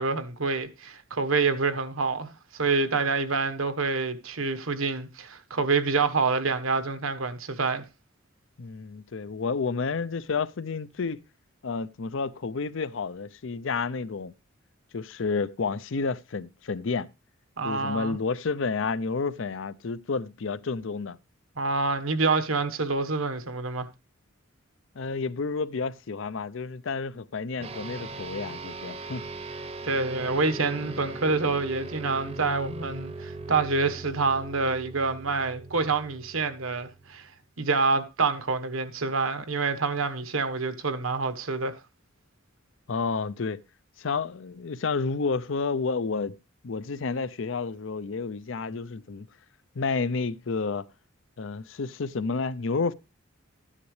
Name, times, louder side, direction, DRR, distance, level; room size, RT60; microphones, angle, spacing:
voice 1, 0.0-7.8 17.6-18.2 21.6-23.9 29.8-37.3 37.6-41.7, right 4 dB, 85° right, 1.2 m, -27 dB
voice 2, 8.6-11.2 11.6-14.3 14.9-17.1 17.6-21.2 25.0-29.2 42.9-43.6 44.0-46.4 46.6-49.3 49.8-50.9 51.4-52.9, left 4 dB, 65° left, 0.6 m, -30 dB
sound 1, 27.6-37.3, right 2 dB, 30° right, 0.8 m, -39 dB
13.0 x 9.9 x 3.2 m
head